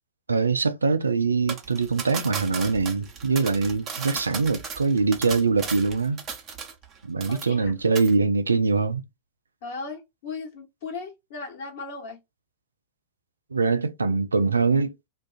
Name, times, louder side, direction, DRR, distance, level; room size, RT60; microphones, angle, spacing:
voice 1, 0.3-6.2 7.0-9.0 13.5-15.1, right 4 dB, 75° right, 0.3 m, -23 dB
sound 1, 1.5-6.9 7.2-7.7 8.0-8.1, right 6 dB, 30° right, 0.8 m, -35 dB
voice 2, 7.3-7.6 9.6-12.2, left 4 dB, 55° left, 1.3 m, -37 dB
2.5 x 2.3 x 2.3 m
figure-of-eight pair, 90°, 0 cm